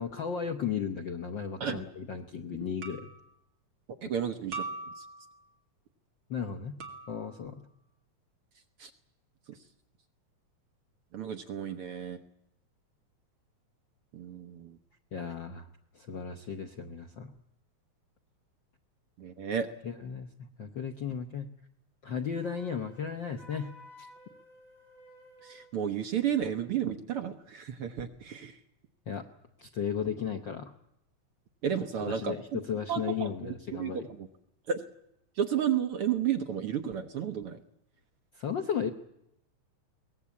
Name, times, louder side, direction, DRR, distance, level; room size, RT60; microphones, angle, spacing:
voice 1, 0.0-3.1 6.3-6.8 7.1-7.6 15.1-15.7 15.9-17.3 19.8-21.5 22.0-23.7 24.0-24.1 29.1-29.2 29.6-30.7 32.0-34.1 38.3-38.9, left 7 dB, 65° left, 7 dB, 1.2 m, -35 dB
sound 1, 1.4-1.7 2.8-3.4 4.5-5.4 6.8-7.4, right 4 dB, 45° right, 2.6 m, -41 dB
voice 2, 4.0-4.6 5.0-5.1 8.8-8.9 9.5-9.6 11.1-12.2 14.1-14.8 19.2-19.7 25.4-28.6 31.6-32.4 32.9-34.3 34.7-34.8 35.4-37.6, right 8 dB, 60° right, 7 dB, 1.6 m, -32 dB
Wind instrument woodwind instrument, 22.3-25.7, equal, 25° right, 5.5 m, -54 dB
22.5 x 18.5 x 8.4 m, 0.81 s
omnidirectional pair, 3.4 m